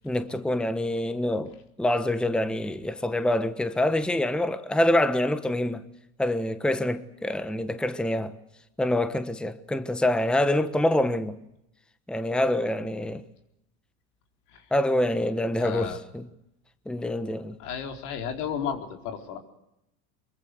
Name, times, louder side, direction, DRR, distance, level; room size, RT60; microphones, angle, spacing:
voice 1, 0.0-1.5 1.8-5.8 6.2-8.3 8.8-11.4 12.1-13.2 14.7-16.3 16.9-17.5, left 1 dB, ahead, 1.2 m, -26 dB
voice 2, 15.6-16.0 17.6-19.4, left 7 dB, 75° left, 4.3 m, -33 dB
24.5 x 23.0 x 8.1 m
supercardioid pair, 105°, 45 cm